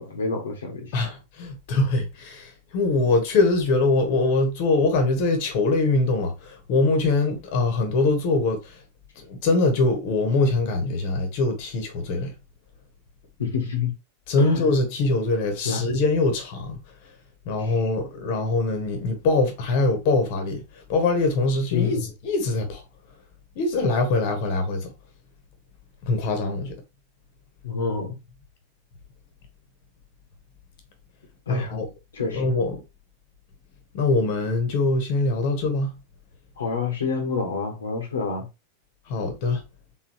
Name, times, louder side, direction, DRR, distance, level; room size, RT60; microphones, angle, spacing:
voice 1, 0.0-1.0 13.4-13.9 14.4-14.7 15.6-15.8 17.6-17.7 21.7-22.0 27.6-28.2 31.5-31.7 32.1-32.4 36.6-38.5, left 5 dB, 70° left, 1.1 m, -27 dB
voice 2, 0.9-8.8 9.2-12.3 14.3-16.8 17.4-22.8 23.5-24.9 26.0-26.8 31.5-31.9 32.2-32.8 33.9-36.0 39.1-39.6, left 3 dB, 45° left, 1.2 m, -23 dB
3.9 x 3.8 x 3.0 m
figure-of-eight pair, 90°, 0 cm